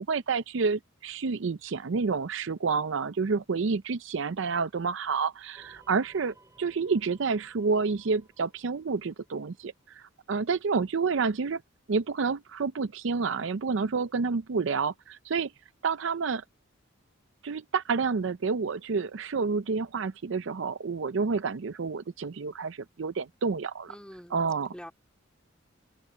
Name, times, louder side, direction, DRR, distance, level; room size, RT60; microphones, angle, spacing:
voice 1, 0.0-11.6 11.9-15.5 15.8-16.4 17.4-23.9 24.3-24.7, right 4 dB, 65° right, 0.5 m, -29 dB
sound 1, 5.5-10.0, right 2 dB, 15° right, 6.1 m, -60 dB
voice 2, 23.9-24.9, equal, 5° left, 3.3 m, -46 dB
head